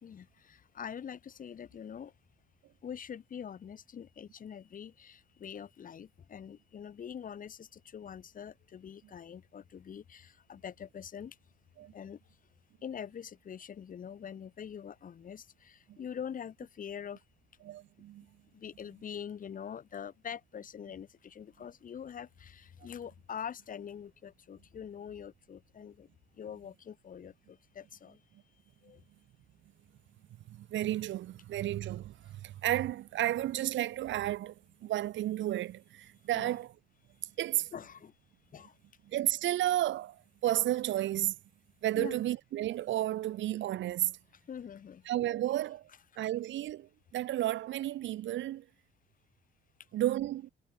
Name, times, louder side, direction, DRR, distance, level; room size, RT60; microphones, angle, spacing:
voice 1, 0.0-2.1 2.8-11.4 11.9-12.2 12.8-17.2 18.5-26.1 26.4-28.2 28.8-29.0 36.3-36.5 37.7-38.1 38.5-38.7 41.9-42.2 44.5-45.0, left 8 dB, 45° left, 0.9 m, -44 dB
voice 2, 17.6-18.3 30.5-34.5 34.8-36.7 37.4-37.7 39.1-41.4 41.8-44.2 45.1-45.9 46.2-48.7 49.9-50.5, right 13 dB, 70° right, 0.7 m, -32 dB
cardioid pair, 90°, 20 cm